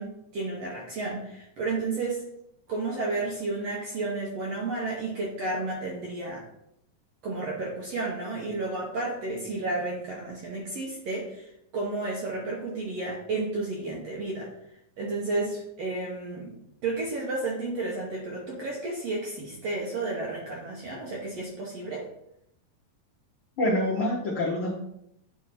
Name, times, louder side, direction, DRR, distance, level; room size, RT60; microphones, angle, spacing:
voice 1, 0.0-2.2 2.7-6.4 7.2-11.5 11.7-14.5 15.0-16.5 16.8-22.1, right 3 dB, 65° right, -3 dB, 1.7 m, -32 dB
voice 2, 23.6-24.7, left 1 dB, 85° left, -3 dB, 1.1 m, -26 dB
9.1 x 3.5 x 4.2 m, 0.78 s
omnidirectional pair, 4.1 m